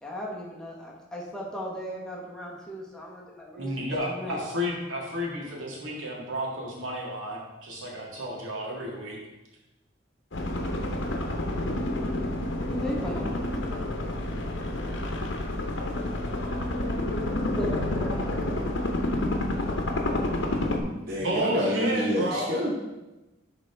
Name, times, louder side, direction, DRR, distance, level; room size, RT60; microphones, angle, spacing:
voice 1, 0.0-4.4 12.7-13.3 17.6-18.4, equal, 5° left, -4 dB, 1.0 m, -36 dB
voice 2, 3.6-9.2 21.2-22.6, equal, 85° right, -2 dB, 1.8 m, -32 dB
sound 1, 10.3-20.8, left 1 dB, 65° left, 0.8 m, -29 dB
voice 3, 21.1-22.7, equal, 50° right, -4 dB, 1.0 m, -27 dB
10.5 x 3.9 x 3.4 m, 1.0 s
head